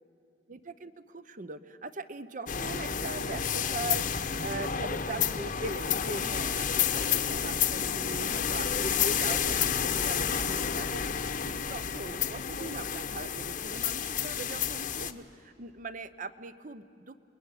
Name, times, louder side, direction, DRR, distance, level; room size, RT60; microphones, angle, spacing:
voice 1, 0.5-17.2, right 3 dB, 45° right, 13 dB, 0.9 m, -40 dB
sound 1, 2.5-15.1, left 8 dB, 50° left, 1.0 m, -30 dB
28.0 x 21.0 x 9.8 m, 2.5 s
head